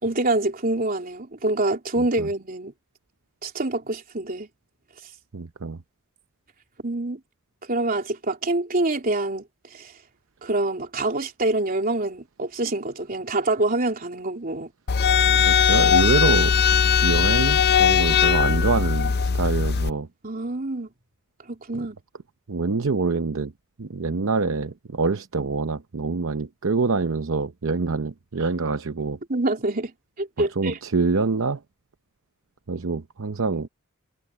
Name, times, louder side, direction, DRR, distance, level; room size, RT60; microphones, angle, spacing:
voice 1, 0.0-2.7 3.4-4.5 6.8-7.2 7.6-9.4 9.7-9.9 10.4-14.7 20.2-20.9 21.4-22.0 29.3-29.9 30.2-30.8, right 2 dB, 45° right, 3.2 m, -26 dB
voice 2, 5.3-5.8 15.3-16.5 17.0-20.1 21.7-21.8 22.5-23.5 23.8-29.2 30.6-31.6 32.7-33.7, right 4 dB, 65° right, 0.7 m, -25 dB
sound 1, 14.9-19.9, left 7 dB, 50° left, 0.5 m, -19 dB
head